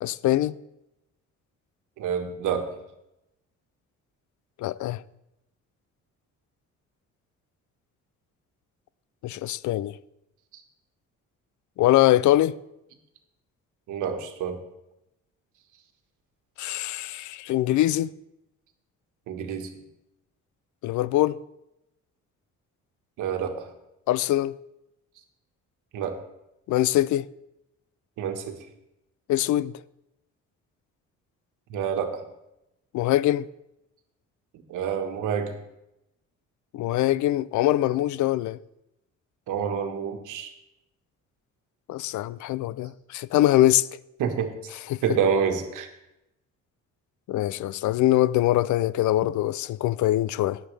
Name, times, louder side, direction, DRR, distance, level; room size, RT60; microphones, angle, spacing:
voice 1, 0.0-0.6 4.6-5.0 9.2-10.0 11.8-12.6 16.6-18.1 20.8-21.4 24.1-24.6 26.7-27.3 29.3-29.7 32.9-33.5 36.7-38.6 41.9-43.9 44.9-45.0 47.3-50.6, left 14 dB, 75° left, 0.5 m, -23 dB
voice 2, 2.0-2.7 13.9-14.6 19.3-19.7 23.2-23.7 25.9-26.2 28.2-28.5 31.7-32.2 34.7-35.5 39.5-40.5 44.2-44.5 45.0-45.9, right 7 dB, 85° right, 1.5 m, -28 dB
17.5 x 7.4 x 3.3 m
cardioid pair, 90°, 30 cm